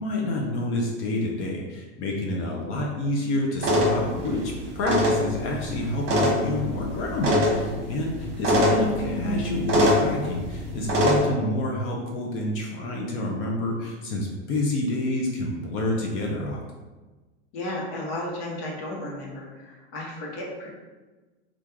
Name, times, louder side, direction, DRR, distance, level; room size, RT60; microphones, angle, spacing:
voice 1, 0.0-16.6, left 1 dB, 35° left, -1 dB, 0.5 m, -29 dB
sound 1, 3.6-11.2, left 1 dB, 35° right, 1.2 m, -24 dB
voice 2, 17.5-20.7, left 1 dB, 55° left, -3 dB, 1.1 m, -34 dB
3.0 x 2.4 x 3.5 m, 1.2 s
hypercardioid pair, 120°, 35 cm